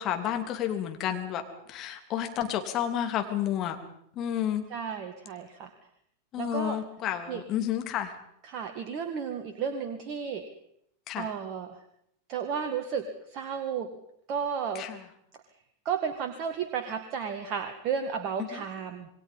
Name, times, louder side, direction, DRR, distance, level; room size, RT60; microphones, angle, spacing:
voice 1, 0.0-1.4 1.7-3.8 4.1-4.6 6.3-8.1 11.1-11.3 14.7-15.0 18.5-18.6, left 10 dB, 35° left, 5 dB, 3.1 m, -31 dB
voice 2, 4.7-5.7 6.4-6.8 7.3-7.4 8.4-10.4 11.2-11.8 12.3-13.9 14.3-14.8 15.9-19.1, right 7 dB, 40° right, 7 dB, 2.0 m, -33 dB
27.5 x 21.5 x 5.5 m, 0.71 s
figure-of-eight pair, 90°, 0 cm